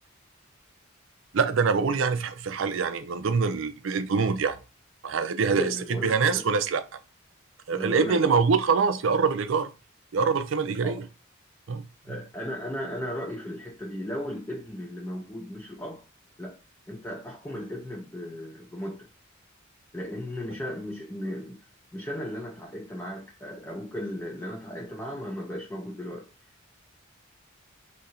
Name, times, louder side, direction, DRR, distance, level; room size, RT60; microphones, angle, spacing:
voice 1, 1.3-4.6 5.0-6.8 7.7-9.7 10.1-11.0 11.7-11.8, right 5 dB, 70° right, 0.5 m, -24 dB
voice 2, 5.5-6.5 7.7-8.4 10.8-11.0 12.0-16.0 16.4-16.6 16.9-19.1 19.9-21.6 21.9-26.3, equal, 10° left, 0.5 m, -36 dB
2.8 x 2.6 x 4.2 m
head